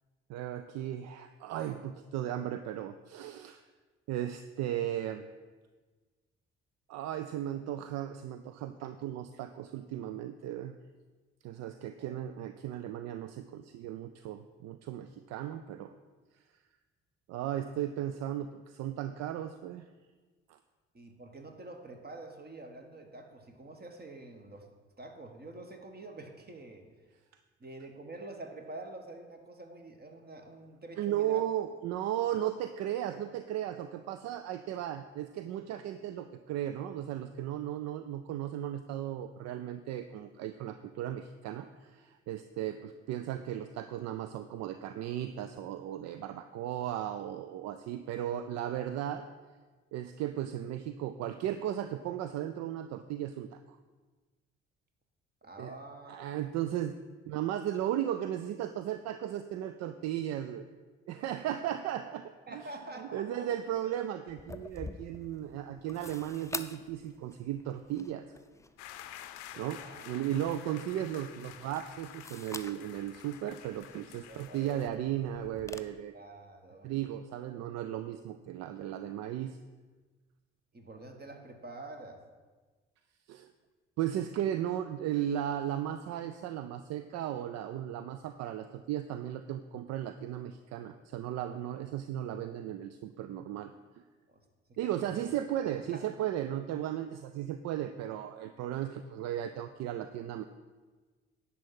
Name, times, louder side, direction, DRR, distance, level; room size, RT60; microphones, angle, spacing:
voice 1, 0.3-3.6 4.1-5.3 6.9-10.8 11.4-15.9 17.3-19.8 20.5-20.6 31.0-49.3 49.9-53.8 55.6-55.7 56.1-57.0 57.3-60.7 61.1-62.6 63.0-68.3 69.0-69.2 69.6-69.8 70.1-76.1 76.8-79.6 83.3-83.5 84.0-93.7 94.8-100.4, right 11 dB, 60° right, 10 dB, 0.5 m, -36 dB
voice 2, 20.9-24.7 25.0-26.8 27.6-31.5 55.4-56.3 62.5-63.5 63.8-63.9 69.5-70.5 74.3-75.1 75.6-75.8 76.1-76.9 80.7-82.2 94.3-94.4 94.8-95.3 95.6-96.0, right 2 dB, 30° right, 4 dB, 1.7 m, -47 dB
sound 1, 64.3-75.8, left 3 dB, 10° left, 0.6 m, -48 dB
sound 2, 68.8-74.9, left 12 dB, 75° left, 0.6 m, -50 dB
10.5 x 4.2 x 7.7 m, 1.3 s
figure-of-eight pair, 40°, 30 cm